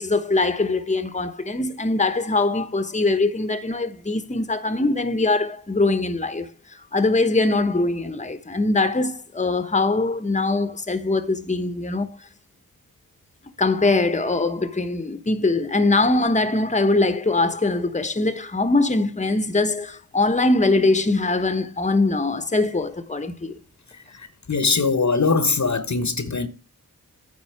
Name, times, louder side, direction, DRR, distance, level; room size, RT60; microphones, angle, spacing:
voice 1, 0.0-12.1 13.6-23.6, left 2 dB, 20° left, 1.1 m, -22 dB
voice 2, 23.9-26.5, left 4 dB, 50° left, 1.1 m, -22 dB
9.3 x 4.2 x 7.1 m
cardioid pair, 45°, 35 cm